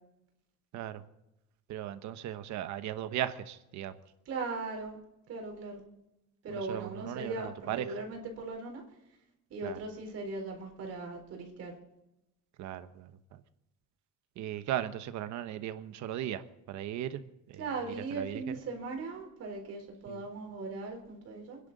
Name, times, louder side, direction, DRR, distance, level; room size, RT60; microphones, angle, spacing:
voice 1, 1.7-3.9 6.5-8.0 9.6-9.8 12.6-13.4 14.4-16.4 16.7-17.2 17.5-18.4 20.1-20.2, right 11 dB, 70° right, 11 dB, 1.0 m, -37 dB
voice 2, 4.3-5.0 5.3-5.8 6.4-8.8 9.5-11.7 17.6-21.6, right 3 dB, 55° right, 1 dB, 4.1 m, -39 dB
28.0 x 10.5 x 4.0 m, 0.90 s
cardioid pair, 155°, 30 cm